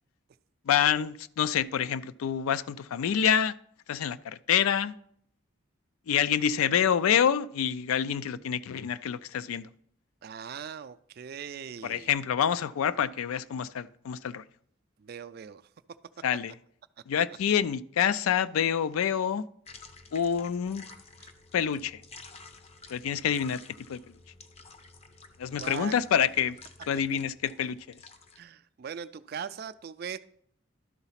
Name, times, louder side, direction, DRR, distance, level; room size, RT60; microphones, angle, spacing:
voice 1, 0.7-3.5 3.9-5.0 6.1-9.7 11.8-14.4 16.2-16.5 17.1-19.4 20.1-20.8 21.5-22.0 22.9-23.6 23.9-24.0 25.4-26.6 26.9-27.8, left 8 dB, 85° left, 0.4 m, -27 dB
voice 2, 10.2-12.1 15.0-15.6 21.2-21.3 25.4-26.0 28.3-30.2, right 7 dB, 45° right, 0.3 m, -40 dB
sound 1, 19.7-28.4, left 4 dB, 30° left, 0.5 m, -50 dB
11.5 x 4.0 x 5.7 m
head